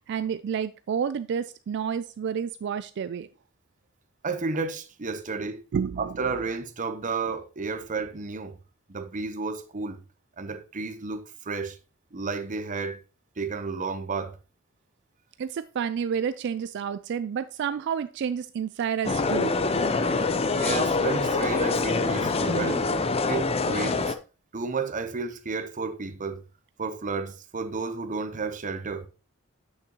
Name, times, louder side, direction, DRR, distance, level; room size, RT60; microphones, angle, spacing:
voice 1, 0.1-3.3 5.7-6.1 15.4-19.5, right 7 dB, 55° right, 0.3 m, -30 dB
voice 2, 4.2-5.6 6.0-8.6 8.9-10.0 10.4-11.8 12.1-13.0 13.4-14.4 20.5-22.9 23.3-24.2 24.5-26.4 26.8-29.1, right 4 dB, 35° right, 0.7 m, -32 dB
sound 1, 19.0-24.1, left 3 dB, 30° left, 0.5 m, -25 dB
8.4 x 6.5 x 2.9 m
head